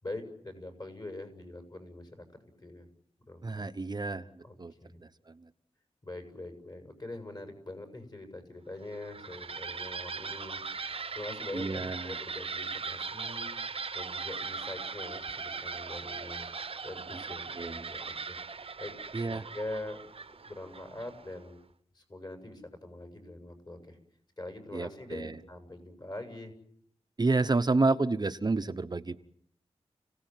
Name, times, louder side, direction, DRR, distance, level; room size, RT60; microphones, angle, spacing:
voice 1, 0.0-2.2 2.6-2.9 3.3-3.6 4.4-5.0 6.0-13.5 13.9-16.5 16.8-18.9 19.2-20.0 20.5-21.5 21.9-24.0 24.4-26.5, left 2 dB, 35° left, 6 dB, 7.8 m, -43 dB
voice 2, 3.4-4.7 5.3-5.5 11.5-12.2 17.1-17.2 17.6-17.9 19.1-19.4 24.7-25.4 27.2-29.2, right 3 dB, 40° right, 8 dB, 1.0 m, -30 dB
sound 1, 8.8-21.4, right 4 dB, 60° right, 1.2 m, -39 dB
30.0 x 18.0 x 9.4 m, 0.68 s
wide cardioid pair, 90°, 11 cm